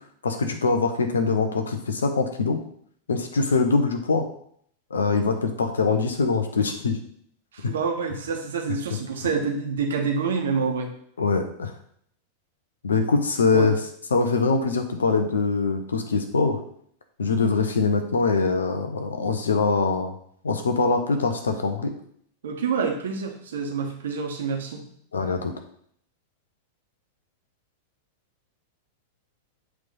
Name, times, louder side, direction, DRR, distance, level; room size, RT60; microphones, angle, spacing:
voice 1, 0.2-2.6 3.1-4.2 4.9-7.0 11.2-11.7 12.8-13.8 14.1-16.6 17.2-20.1 20.4-21.9 25.1-25.5, left 4 dB, 70° left, 6 dB, 1.0 m, -23 dB
voice 2, 7.5-10.9 13.5-13.7 22.4-24.8, right 5 dB, 65° right, 2 dB, 1.3 m, -27 dB
7.9 x 3.6 x 5.5 m, 0.64 s
figure-of-eight pair, 90°, 0 cm